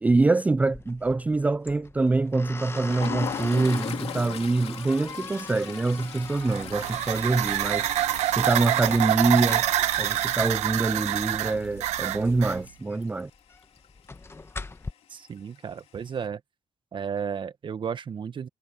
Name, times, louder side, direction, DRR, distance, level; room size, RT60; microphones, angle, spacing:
voice 1, 0.0-7.9 8.3-9.6 10.0-13.3, right 3 dB, 15° right, 0.3 m, -25 dB
sound 1, 0.6-14.9, left 3 dB, 20° left, 1.3 m, -42 dB
Toilet flush, 2.6-13.3 13.6-13.9 14.2-14.3 15.3-15.8, left 9 dB, 65° left, 2.9 m, -40 dB
sound 2, 6.3-12.6, right 14 dB, 85° right, 1.0 m, -26 dB
voice 2, 15.1-16.4 16.9-18.5, right 7 dB, 45° right, 1.5 m, -33 dB
cardioid pair, 85°, 11 cm